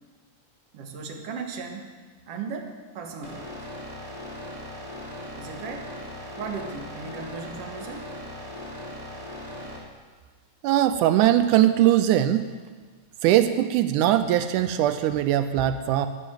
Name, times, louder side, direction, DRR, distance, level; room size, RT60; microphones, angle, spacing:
voice 1, 0.7-1.9 2.3-3.5 5.4-5.9 6.4-8.1, right 5 dB, 55° right, 3 dB, 2.2 m, -36 dB
sound 1, 3.2-9.8, left 1 dB, 15° right, 2.4 m, -39 dB
voice 2, 10.6-12.5 13.2-16.1, right 12 dB, 85° right, 10 dB, 2.1 m, -21 dB
12.0 x 11.0 x 7.6 m, 1.4 s
omnidirectional pair, 3.6 m